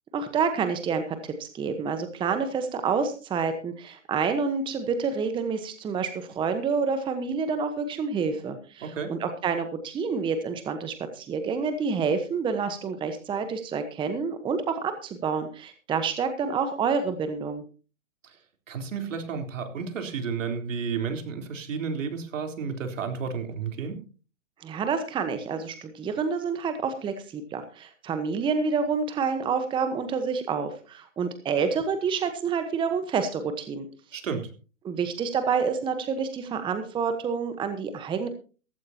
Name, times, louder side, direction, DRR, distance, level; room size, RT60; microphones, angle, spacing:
voice 1, 0.1-17.6 24.6-33.9 34.8-38.3, right 5 dB, 10° right, 8 dB, 1.1 m, -28 dB
voice 2, 8.8-9.1 18.2-18.4 18.7-24.0 34.1-34.5, right 6 dB, 65° right, 6 dB, 3.8 m, -32 dB
16.5 x 15.0 x 2.9 m, 0.35 s
hypercardioid pair, 135°, 40 cm